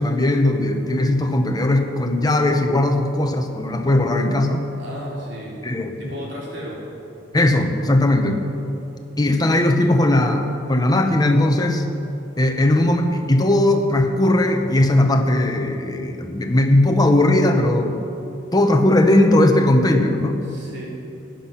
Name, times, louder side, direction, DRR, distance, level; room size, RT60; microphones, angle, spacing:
voice 1, 0.0-4.6 5.6-5.9 7.3-8.4 9.2-11.8 12.4-18.1 18.5-20.4, left 1 dB, 20° left, 4 dB, 1.0 m, -18 dB
voice 2, 4.8-5.6 5.8-6.8 20.5-20.8, equal, 60° right, -5 dB, 3.8 m, -35 dB
17.0 x 10.0 x 5.9 m, 2.9 s
head